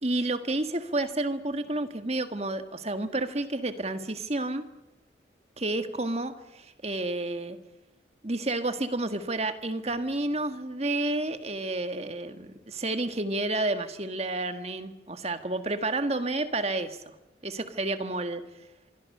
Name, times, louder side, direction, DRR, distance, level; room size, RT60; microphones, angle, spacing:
voice 1, 0.0-4.6 5.6-7.6 8.2-17.0 17.4-18.4, right 2 dB, 35° right, 9 dB, 1.6 m, -30 dB
25.5 x 23.5 x 6.7 m, 1.0 s
head